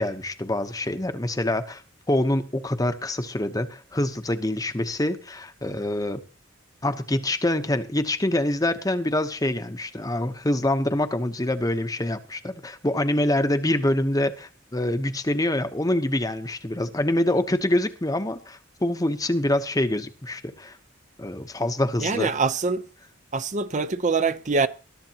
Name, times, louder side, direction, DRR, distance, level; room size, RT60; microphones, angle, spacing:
voice 1, 0.0-1.8 2.1-6.2 6.8-20.8 21.2-22.3, left 1 dB, 15° left, 1.0 m, -25 dB
voice 2, 22.0-22.8 23.3-24.7, right 4 dB, 35° right, 0.7 m, -24 dB
21.0 x 12.5 x 3.0 m
head